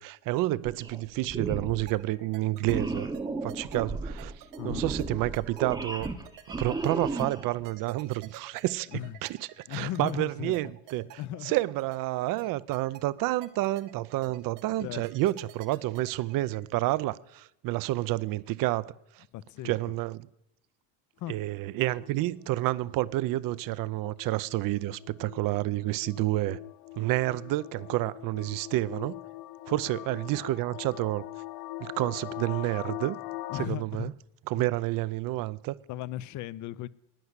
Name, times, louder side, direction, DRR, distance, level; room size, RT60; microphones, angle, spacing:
voice 1, 0.0-3.1 3.4-6.1 6.6-8.9 9.2-9.3 9.7-19.2 19.6-20.2 21.3-26.6 27.0-29.2 29.7-31.2 31.8-33.2 33.5-34.1 34.5-35.7, right 17 dB, 45° right, 0.6 m, -29 dB
sound 1, 0.6-1.0 1.3-1.9 2.6-7.6, right 3 dB, 10° right, 0.8 m, -34 dB
sound 2, 1.9-16.6, right 13 dB, 80° right, 1.9 m, -49 dB
voice 2, 9.7-10.6 11.2-11.5 14.8-15.1 19.3-19.7 21.2-21.4 33.5-34.1 34.5-34.7 35.9-36.9, left 13 dB, 40° left, 0.5 m, -36 dB
sound 3, 21.7-33.7, left 17 dB, 80° left, 0.7 m, -42 dB
11.0 x 9.6 x 8.1 m
cardioid pair, 130°, 46 cm